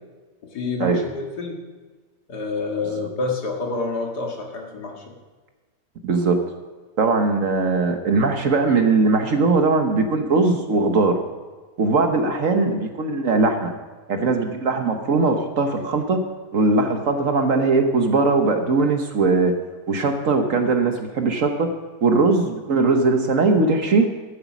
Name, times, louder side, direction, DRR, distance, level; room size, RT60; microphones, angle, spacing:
voice 1, 0.5-1.5 2.3-4.9, left 3 dB, 70° left, 1 dB, 2.4 m, -28 dB
voice 2, 6.0-6.4 7.0-11.2 11.8-13.7 14.1-16.2 16.5-19.5 19.9-21.7 22.0-24.1, right 3 dB, 55° right, 5 dB, 1.3 m, -20 dB
12.5 x 8.1 x 6.1 m, 1.3 s
omnidirectional pair, 1.9 m